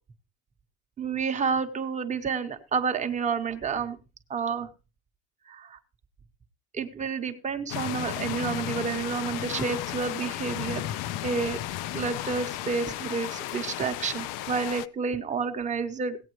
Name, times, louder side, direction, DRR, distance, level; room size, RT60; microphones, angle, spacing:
voice 1, 1.0-4.0 4.3-4.7 5.5-5.8 6.7-10.8 11.2-11.6 11.9-16.2, right 5 dB, 20° right, 7 dB, 0.8 m, -30 dB
sound 1, 7.7-14.9, left 14 dB, 65° left, 0.5 m, -34 dB
16.5 x 8.6 x 3.0 m, 0.30 s
cardioid pair, 145°, 35 cm